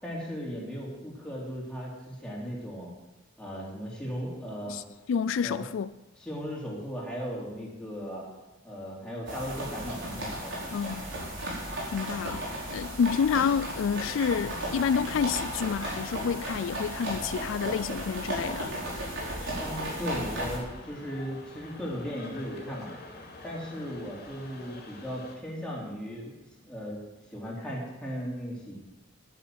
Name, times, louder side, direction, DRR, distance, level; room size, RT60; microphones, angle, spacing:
voice 1, 0.0-2.9 3.4-4.8 5.4-5.7 6.2-8.3 8.6-10.6 19.6-22.9 23.4-26.3 26.6-27.0 27.3-28.8, equal, 5° left, 3.7 m, -37 dB
voice 2, 4.7-5.9 10.7-11.1 11.9-18.8, left 6 dB, 70° left, 0.3 m, -29 dB
sound 1, 9.3-20.6, right 1 dB, 65° right, 4.8 m, -35 dB
sound 2, 14.0-25.4, left 2 dB, 50° left, 2.9 m, -47 dB
10.5 x 10.0 x 7.7 m
head